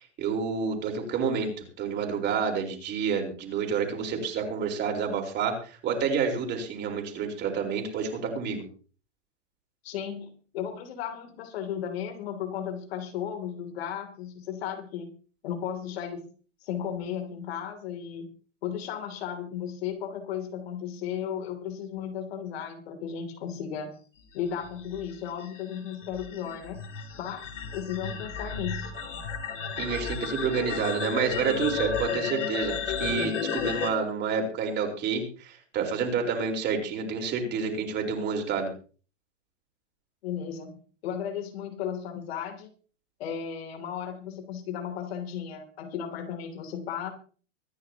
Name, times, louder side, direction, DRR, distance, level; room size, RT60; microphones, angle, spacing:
voice 1, 0.0-1.5 1.8-8.6 29.8-38.7, right 6 dB, 30° right, 2 dB, 4.4 m, -29 dB
voice 2, 9.8-15.1 15.4-16.3 16.6-18.3 18.6-23.9 24.3-26.8 27.2-28.9 40.2-42.7 43.2-47.1, left 8 dB, 55° left, 6 dB, 3.0 m, -35 dB
sound 1, 24.6-33.9, left 6 dB, 75° left, 3.4 m, -33 dB
24.5 x 10.0 x 2.9 m, 0.40 s
hypercardioid pair, 130°, 36 cm